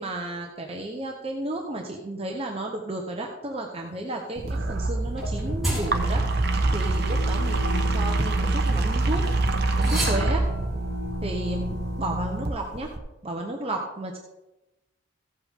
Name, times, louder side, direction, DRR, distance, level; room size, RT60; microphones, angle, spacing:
voice 1, 0.0-6.2 6.7-9.3 9.7-10.4 11.2-12.9 13.2-14.2, right 1 dB, 30° right, 1 dB, 1.0 m, -33 dB
sound 1, 4.4-13.0, right 2 dB, 50° right, 1.0 m, -25 dB
sound 2, 5.2-9.0 9.7-12.1, equal, ahead, 4.0 m, -35 dB
15.0 x 7.9 x 3.7 m, 1.0 s
head